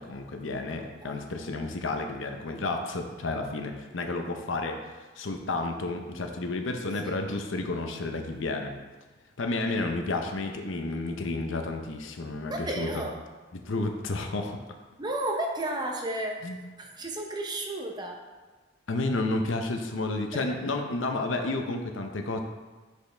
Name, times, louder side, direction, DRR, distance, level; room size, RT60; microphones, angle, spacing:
voice 1, 0.0-4.8 5.2-8.7 9.4-13.0 13.5-14.6 16.4-16.6 18.9-22.4, left 2 dB, 80° left, 4 dB, 0.7 m, -31 dB
voice 2, 1.0-1.5 7.0-7.2 12.5-13.1 15.0-16.4 16.8-18.2, right 1 dB, 20° right, 1 dB, 0.7 m, -33 dB
6.1 x 5.6 x 3.4 m, 1.3 s
head